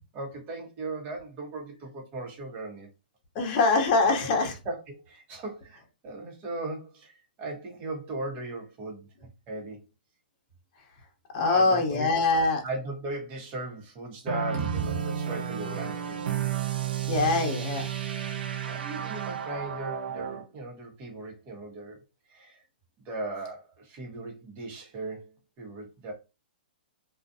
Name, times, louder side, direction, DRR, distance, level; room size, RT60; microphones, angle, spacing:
voice 1, 0.1-2.9 4.0-4.3 4.6-9.1 9.5-9.8 11.4-12.1 12.6-16.3 18.6-22.0 22.3-22.6 23.0-25.3 25.6-26.1, right 2 dB, 30° right, 1.0 m, -37 dB
voice 2, 3.3-4.5 11.3-12.6 17.1-17.9, left 3 dB, 40° left, 0.9 m, -23 dB
sound 1, 14.3-20.4, right 9 dB, 75° right, 0.5 m, -32 dB
2.4 x 2.4 x 2.6 m
hypercardioid pair, 140°, 5 cm